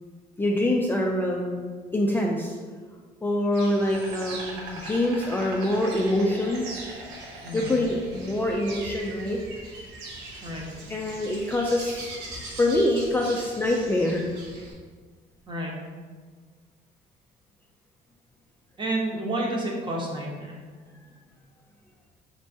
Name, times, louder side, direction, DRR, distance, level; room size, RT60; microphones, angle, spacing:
voice 1, 0.4-1.6 1.9-2.6 3.2-6.7 7.5-9.4 10.9-12.1 12.6-14.2, left 1 dB, 10° left, -1 dB, 0.3 m, -25 dB
Insect, 3.5-14.7, right 2 dB, 90° right, 0.9 m, -40 dB
voice 2, 7.4-7.8 10.4-10.7 15.5-15.7 18.8-20.6, right 1 dB, 30° right, -2 dB, 1.0 m, -30 dB
4.3 x 3.2 x 2.7 m, 1.5 s
cardioid pair, 110°, 17 cm